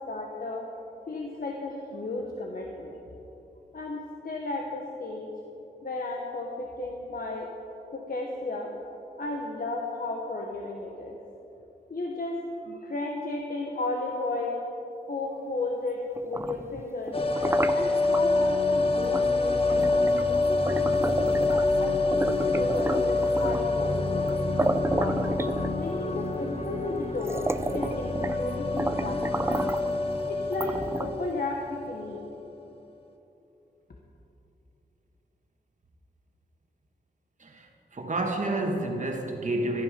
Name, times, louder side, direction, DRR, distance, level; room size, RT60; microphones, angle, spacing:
voice 1, 0.1-0.7 1.1-3.0 3.7-5.3 5.8-7.5 7.9-8.7 9.2-11.2 11.9-12.4 12.6-14.6 15.1-17.2 17.7-20.5 21.2-24.3 24.9-25.2 25.7-27.4 27.7-29.7 30.3-32.2, left 2 dB, 55° left, 0 dB, 1.4 m, -34 dB
sound 1, 16.2-18.2 19.1-19.3 19.7-21.8 22.1-23.8 24.3-24.4 24.6-26.1 26.7-26.8 27.2-28.5 28.8-29.9 30.5-31.3, right 2 dB, 15° right, 0.5 m, -31 dB
sound 2, 17.1-32.0 32.3-32.4, left 3 dB, 35° left, 1.2 m, -27 dB
voice 2, 37.4-39.8, right 2 dB, 45° right, 1 dB, 1.9 m, -30 dB
16.5 x 11.5 x 5.2 m, 3.0 s
wide cardioid pair, 90°, 17 cm